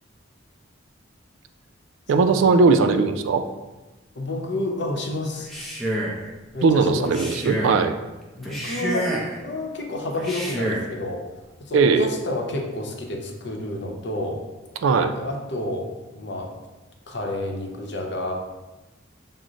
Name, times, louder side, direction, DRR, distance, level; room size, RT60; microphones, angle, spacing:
voice 1, 2.1-3.4 6.6-8.0 11.7-12.1 14.8-15.1, right 4 dB, 85° right, 8 dB, 0.4 m, -18 dB
voice 2, 4.1-5.5 6.5-7.2 8.4-11.2 11.6-14.4 15.0-15.9 16.1-16.5 17.1-18.3, left 1 dB, 60° left, 1 dB, 0.7 m, -30 dB
Male speech man speaking, 5.3-6.3 7.0-7.8 8.4-9.4 10.1-10.9, equal, ahead, 0.6 m, -28 dB
6.2 x 2.1 x 3.8 m, 1.1 s
head